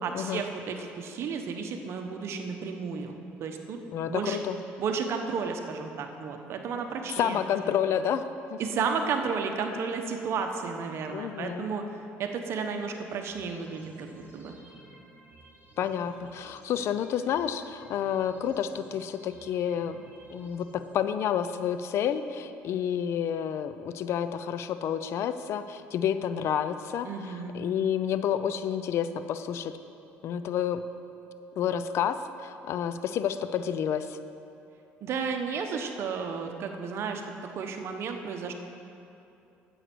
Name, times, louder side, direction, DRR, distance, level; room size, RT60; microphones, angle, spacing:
voice 1, 0.0-3.8 4.1-4.4 4.8-7.4 7.7-7.8 8.6-11.8 12.2-14.5 27.0-27.5 35.0-37.2 37.5-38.5, right 5 dB, 60° right, 4 dB, 1.1 m, -33 dB
voice 2, 3.9-4.6 7.2-8.2 8.5-8.6 10.9-11.7 15.8-20.0 20.3-29.7 30.2-30.8 31.6-34.2, left 9 dB, 60° left, 11 dB, 0.5 m, -29 dB
sound 1, 12.9-20.9, right 2 dB, 35° right, 2.8 m, -55 dB
9.2 x 8.0 x 6.1 m, 2.8 s
cardioid pair, 100°, 5 cm